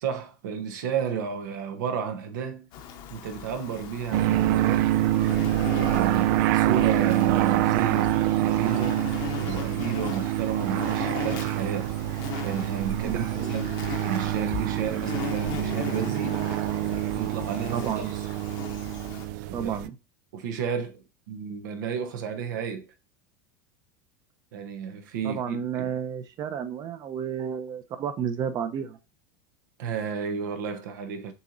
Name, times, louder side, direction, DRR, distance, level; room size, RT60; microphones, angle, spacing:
voice 1, 0.0-2.7 3.1-4.9 5.6-8.1 8.4-9.0 9.4-11.9 12.4-13.8 14.0-16.5 17.0-18.0 19.5-19.7 20.3-22.9 24.5-25.9 27.4-27.6 29.8-31.3, right 7 dB, 85° right, 1.0 m, -32 dB
Insect, 2.7-19.3, left 8 dB, 55° left, 0.9 m, -39 dB
sound 1, 4.1-19.9, right 14 dB, 70° right, 0.4 m, -26 dB
voice 2, 13.0-13.5 17.7-18.1 19.5-20.0 25.2-29.0, right 8 dB, 40° right, 0.7 m, -31 dB
6.8 x 3.0 x 2.6 m
supercardioid pair, 125°, 10 cm